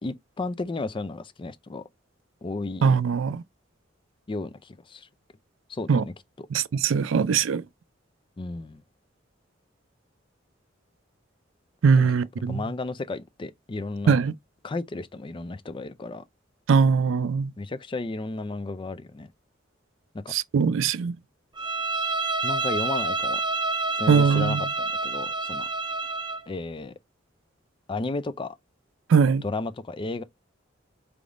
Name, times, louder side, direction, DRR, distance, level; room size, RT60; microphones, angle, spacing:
voice 1, 0.0-1.8 2.4-2.9 4.3-5.1 5.7-6.5 8.4-8.8 12.0-12.1 12.5-14.2 14.6-16.2 17.6-19.3 20.2-20.3 22.4-23.4 24.0-25.7 26.5-26.9 27.9-28.6 29.4-30.2, left 3 dB, 25° left, 0.4 m, -33 dB
voice 2, 2.8-3.4 5.9-6.0 6.5-7.6 11.8-12.6 14.1-14.3 16.7-17.5 20.3-21.2 24.1-24.6 29.1-29.4, right 6 dB, 80° right, 0.4 m, -21 dB
Bowed string instrument, 21.6-26.5, right 3 dB, 25° right, 0.6 m, -28 dB
4.8 x 3.4 x 2.5 m
head